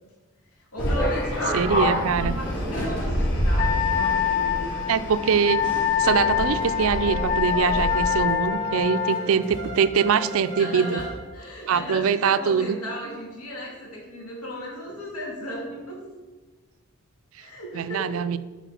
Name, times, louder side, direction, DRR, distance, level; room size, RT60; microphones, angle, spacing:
voice 1, 0.6-1.6 2.1-4.9 10.6-16.0 17.4-18.2, equal, 90° left, -2 dB, 2.3 m, -35 dB
sound 1, 0.8-8.2, equal, 55° left, 2.3 m, -27 dB
voice 2, 1.5-2.3 4.9-5.6 6.0-11.0 11.7-12.8 17.7-18.4, right 6 dB, 70° right, 14 dB, 0.4 m, -23 dB
Wind instrument woodwind instrument, 3.6-9.2, left 9 dB, 40° left, 0.6 m, -25 dB
sound 2, 6.0-11.9, right 1 dB, 20° left, 1.5 m, -35 dB
8.1 x 4.5 x 5.7 m, 1.3 s
head